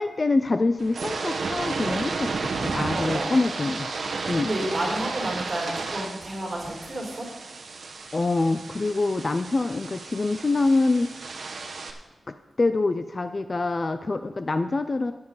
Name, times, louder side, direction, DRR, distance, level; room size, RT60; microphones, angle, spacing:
voice 1, 0.0-3.9 4.3-4.5 8.1-11.3 12.3-15.1, left 3 dB, 30° left, 9 dB, 0.4 m, -25 dB
sound 1, 0.8-11.9, right 4 dB, 65° right, 1.2 m, -33 dB
voice 2, 2.9-3.4 4.4-7.3, right 1 dB, 30° right, -2 dB, 4.9 m, -31 dB
14.5 x 9.5 x 4.0 m, 1.1 s
wide cardioid pair, 160°, 0 cm